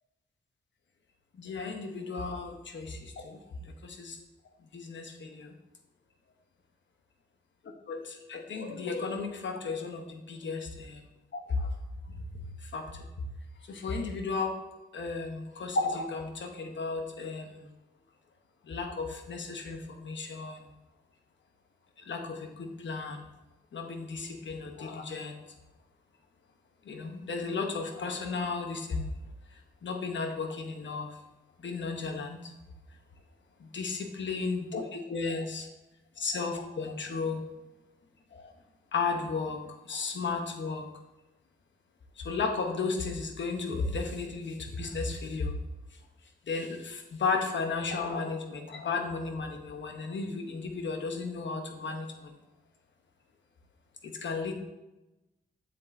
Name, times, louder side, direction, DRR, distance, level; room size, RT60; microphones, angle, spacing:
voice 1, 1.4-4.2 4.7-5.5 7.9-11.0 11.3-11.7 12.1-12.2 12.6-13.1 13.7-14.6 14.9-17.7 18.6-20.7 22.1-23.3 23.7-25.4 26.8-29.1 29.8-31.2 31.6-32.5 33.6-35.7 36.2-37.4 38.3-38.5 38.9-40.9 42.2-45.6 46.5-52.3 54.0-54.5, left 4 dB, 70° left, 4 dB, 1.1 m, -34 dB
7.5 x 7.4 x 2.7 m, 1.0 s
cardioid pair, 70°, 20 cm